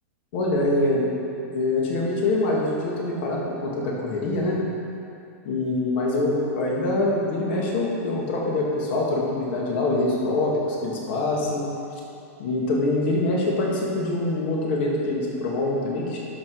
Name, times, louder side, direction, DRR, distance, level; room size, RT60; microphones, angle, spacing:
voice 1, 0.3-1.1 1.5-4.6 5.4-11.7 12.4-16.2, left 2 dB, 45° left, -3 dB, 2.0 m, -24 dB
12.5 x 4.9 x 5.4 m, 2.6 s
supercardioid pair, 170°, 8 cm